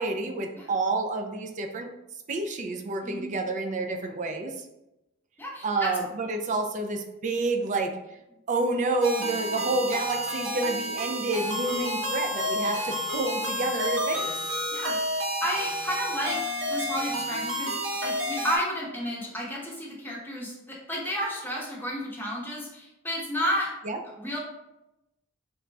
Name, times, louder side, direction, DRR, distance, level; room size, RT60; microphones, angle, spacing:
voice 1, 0.0-1.9 2.3-4.7 5.6-8.0 8.5-14.4 23.8-24.0, right 2 dB, 35° right, 5 dB, 0.4 m, -29 dB
voice 2, 5.4-5.9 14.7-16.4 16.7-23.7 24.1-24.4, equal, 10° left, -4 dB, 0.9 m, -32 dB
sound 1, 9.0-18.6, equal, 80° right, 0.8 m, -30 dB
3.8 x 2.2 x 3.3 m, 0.91 s
head